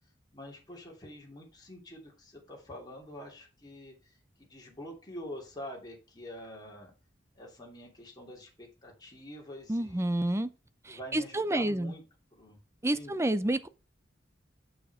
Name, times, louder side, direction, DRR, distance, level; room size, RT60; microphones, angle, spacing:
voice 1, 0.3-4.1 4.4-6.9 7.4-10.4 10.9-12.0 12.3-12.6 12.9-13.1, equal, 20° left, 2.8 m, -46 dB
voice 2, 9.7-10.5 10.9-11.9 12.8-13.7, right 1 dB, 15° right, 0.6 m, -29 dB
6.8 x 6.6 x 4.9 m
head